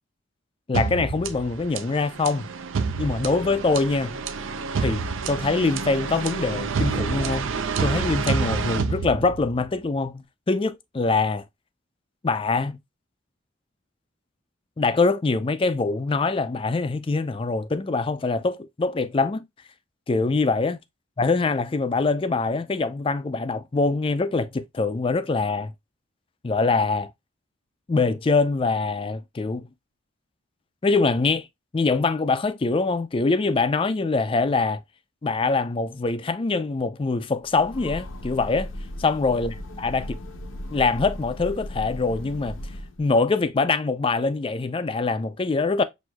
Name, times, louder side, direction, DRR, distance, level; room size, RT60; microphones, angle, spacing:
voice 1, 0.7-2.5 3.0-4.2 4.8-5.0 5.3-7.6 7.8-11.4 12.2-12.8 14.8-19.4 20.1-20.8 21.2-25.7 26.4-27.1 27.9-29.7 30.8-31.5 31.7-34.8 35.2-38.7 39.0-40.0 40.7-42.6 43.0-45.8, left 3 dB, 25° left, 0.4 m, -24 dB
sound 1, 0.7-9.7, right 5 dB, 75° right, 0.5 m, -28 dB
Train, 37.4-43.1, equal, 75° left, 0.7 m, -36 dB
6.1 x 2.6 x 2.2 m
head